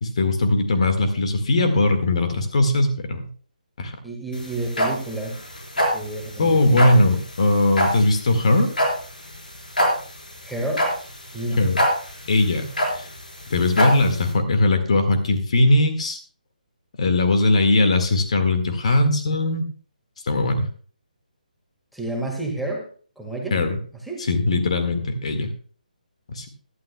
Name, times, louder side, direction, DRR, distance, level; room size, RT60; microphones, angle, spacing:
voice 1, 0.0-3.3 3.8-3.9 6.4-8.7 11.6-11.8 12.3-13.1 13.5-16.2 17.0-19.6 20.3-20.7 23.5-23.8 24.3-25.5 26.3-26.5, left 2 dB, 45° left, 7 dB, 1.8 m, -20 dB
voice 2, 4.0-5.4 5.9-7.2 10.4-10.9 11.3-11.6 13.7-13.9 21.9-22.9 23.2-23.6 24.0-24.3, right 1 dB, ahead, -1 dB, 1.8 m, -30 dB
sound 1, 4.3-14.3, equal, 75° left, 4.6 m, -24 dB
17.0 x 11.5 x 2.3 m, 0.42 s
figure-of-eight pair, 145°, 5 cm